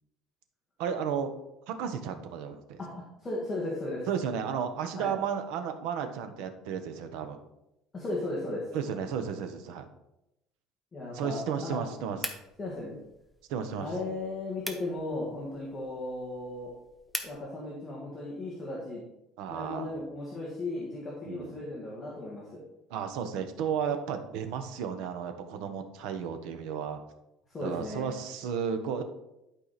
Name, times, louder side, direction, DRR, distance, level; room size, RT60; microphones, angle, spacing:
voice 1, 0.8-1.3 1.7-2.8 4.1-7.4 8.7-9.9 11.1-12.3 13.5-13.9 19.4-19.9 21.2-21.5 22.9-27.0 27.6-29.0, right 7 dB, 70° right, 7 dB, 1.1 m, -33 dB
voice 2, 2.8-4.1 4.9-5.1 7.9-8.7 10.9-11.8 12.6-13.0 13.8-16.7 17.2-19.0 19.5-22.6 27.5-28.1, left 2 dB, 15° left, -5 dB, 1.7 m, -36 dB
sound 1, 12.2-17.4, equal, ahead, 0.8 m, -43 dB
11.5 x 4.9 x 4.2 m, 0.88 s
cardioid pair, 175°, 0 cm